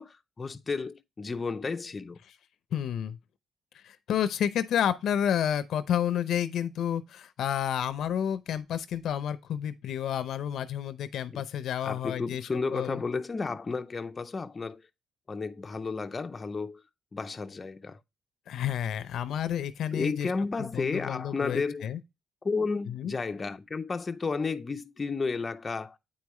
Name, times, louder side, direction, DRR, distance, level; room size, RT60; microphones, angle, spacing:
voice 1, 0.0-2.2 11.3-11.4 11.8-14.8 15.3-16.8 17.1-18.0 19.9-21.9 22.4-26.0, left 4 dB, 30° left, 0.5 m, -32 dB
voice 2, 2.7-3.2 3.7-13.0 18.5-20.3 20.6-22.0 22.9-23.1, left 9 dB, 70° left, 0.6 m, -30 dB
8.6 x 4.8 x 3.1 m
cardioid pair, 90°, 0 cm